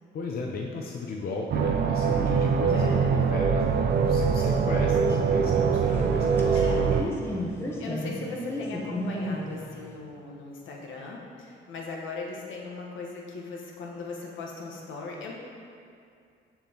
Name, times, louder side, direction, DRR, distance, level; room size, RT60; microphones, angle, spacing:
voice 1, 0.1-7.1, left 3 dB, 50° left, 0 dB, 0.6 m, -36 dB
sound 1, 1.5-7.0, right 6 dB, 50° right, 0.4 m, -23 dB
voice 2, 2.7-3.3 6.5-6.9 7.8-15.3, left 3 dB, 75° left, -2 dB, 1.1 m, -38 dB
sound 2, 3.9-10.0, left 1 dB, 10° left, 0.9 m, -36 dB
6.8 x 5.9 x 2.9 m, 2.4 s
cardioid pair, 90°, 20 cm